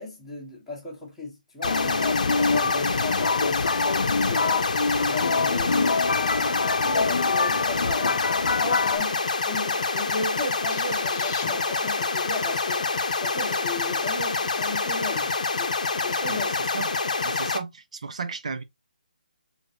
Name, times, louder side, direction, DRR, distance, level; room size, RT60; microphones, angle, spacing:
voice 1, 0.0-3.6 4.1-8.2 8.6-12.8 13.2-15.3 15.6-15.7 16.0-16.5, left 2 dB, ahead, 1.1 m, -35 dB
sound 1, 1.6-9.0, left 4 dB, 85° left, 0.4 m, -25 dB
sound 2, 1.6-17.6, left 4 dB, 50° left, 0.7 m, -27 dB
sound 3, 10.7-14.4, left 6 dB, 20° left, 0.4 m, -42 dB
voice 2, 17.2-18.6, right 4 dB, 45° right, 0.6 m, -34 dB
3.8 x 3.3 x 2.7 m
hypercardioid pair, 175°, 5 cm